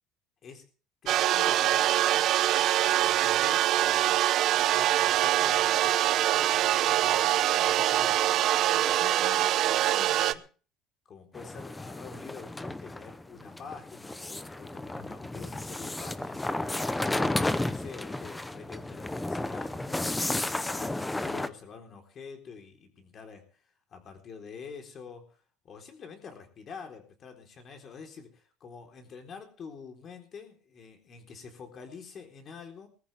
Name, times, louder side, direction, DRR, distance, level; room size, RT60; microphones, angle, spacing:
voice 1, 1.0-2.3 2.7-4.2 4.7-8.2 8.7-10.4 11.1-16.5 17.1-23.6 23.9-32.9, left 6 dB, 35° left, 4 dB, 3.9 m, -46 dB
sound 1, 1.1-10.3, right 13 dB, 50° right, 0.7 m, -24 dB
sound 2, 11.3-21.5, left 2 dB, 10° left, 0.7 m, -33 dB
20.5 x 14.0 x 3.5 m, 0.38 s
cardioid pair, 145°, 0 cm